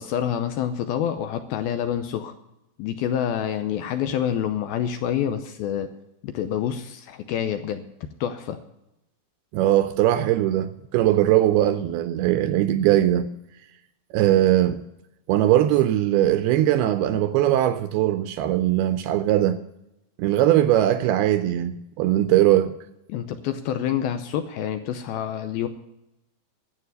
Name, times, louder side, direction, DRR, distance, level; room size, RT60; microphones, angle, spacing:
voice 1, 0.0-2.3 2.8-5.9 6.2-7.9 8.2-8.6 23.1-25.7, left 9 dB, 80° left, 2.3 m, -27 dB
voice 2, 9.5-13.3 14.1-14.8 15.3-19.6 20.2-22.7, right 13 dB, 80° right, 2.3 m, -20 dB
11.5 x 8.0 x 9.4 m
omnidirectional pair, 5.0 m